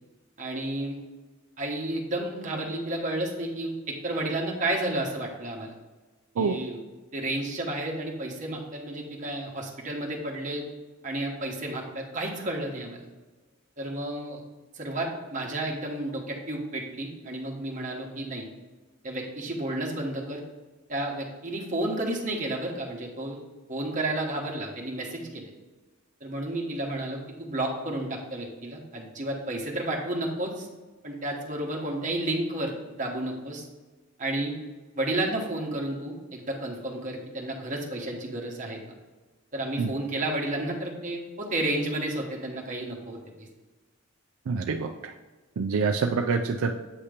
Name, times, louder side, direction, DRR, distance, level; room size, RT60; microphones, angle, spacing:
voice 1, 0.4-1.0 1.6-5.7 6.4-6.8 7.1-10.6 11.0-13.1 13.8-14.4 14.7-18.4 19.0-20.4 20.9-23.4 23.7-25.5 26.2-30.7 31.0-33.7 34.2-34.5 34.9-38.8 39.5-43.5, right 1 dB, 35° right, 0 dB, 1.0 m, -31 dB
voice 2, 44.5-45.1 45.6-46.7, right 5 dB, 75° right, 4 dB, 0.4 m, -26 dB
8.1 x 2.9 x 5.0 m, 1.3 s
head